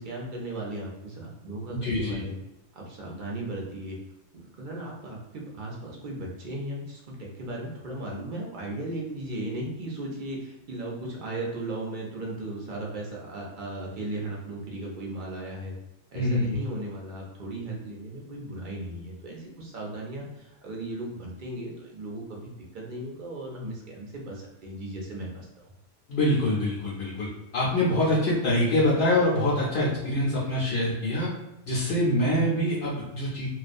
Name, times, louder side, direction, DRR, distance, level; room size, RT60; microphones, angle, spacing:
voice 1, 0.0-2.4 2.7-4.0 4.3-15.7 16.1-25.5, right 1 dB, 55° right, -2 dB, 0.6 m, -36 dB
voice 2, 1.7-2.2 16.1-16.6 26.1-31.3 31.7-33.5, left 1 dB, 65° left, -6 dB, 0.8 m, -25 dB
2.3 x 2.1 x 2.5 m, 0.94 s
omnidirectional pair, 1.3 m